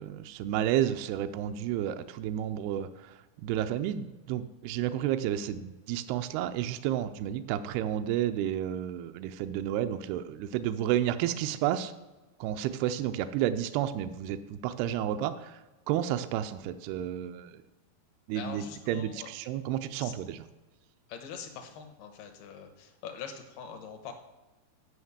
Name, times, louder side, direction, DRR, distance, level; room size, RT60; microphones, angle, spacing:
voice 1, 0.0-11.9 12.4-15.6 15.9-17.6 18.3-20.4, right 11 dB, 85° right, 8 dB, 2.3 m, -31 dB
voice 2, 18.3-19.3 20.0-20.1 21.1-24.1, left 7 dB, 70° left, 5 dB, 3.0 m, -43 dB
9.7 x 5.7 x 7.1 m, 1.2 s
omnidirectional pair, 4.9 m